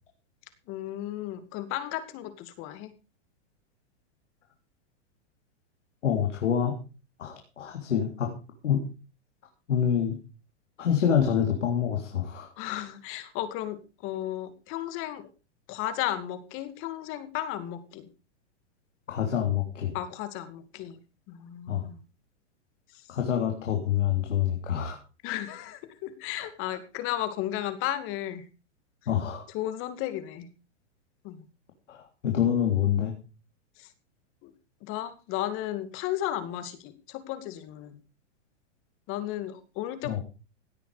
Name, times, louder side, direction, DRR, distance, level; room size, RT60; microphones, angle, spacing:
voice 1, 0.7-2.9 12.6-15.3 15.7-18.1 19.9-21.0 21.3-22.0 22.9-23.0 25.2-28.4 29.5-30.5 31.2-31.4 33.8-33.9 34.4-34.5 34.8-38.0 39.1-40.2, left 12 dB, 35° left, 11 dB, 2.4 m, -34 dB
voice 2, 6.0-6.8 7.2-8.3 8.6-8.8 9.7-10.2 10.8-12.5 19.1-20.0 21.7-21.8 23.1-25.0 26.4-26.5 29.1-29.4 31.9-33.1 40.0-40.2, left 9 dB, 90° left, 3 dB, 3.5 m, -26 dB
17.0 x 9.0 x 5.0 m, 0.33 s
hypercardioid pair, 145°, 35 cm